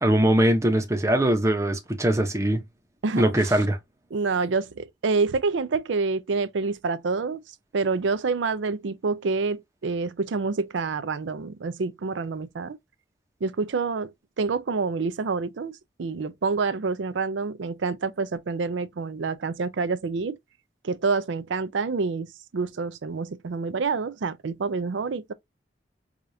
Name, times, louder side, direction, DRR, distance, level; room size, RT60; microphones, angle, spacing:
voice 1, 0.0-2.6 3.1-3.8, right 1 dB, 15° right, 0.7 m, -21 dB
voice 2, 3.0-3.6 4.1-7.4 7.7-12.8 13.4-14.1 14.4-20.4 20.8-25.3, right 4 dB, 80° right, 0.5 m, -27 dB
4.8 x 2.4 x 2.6 m
head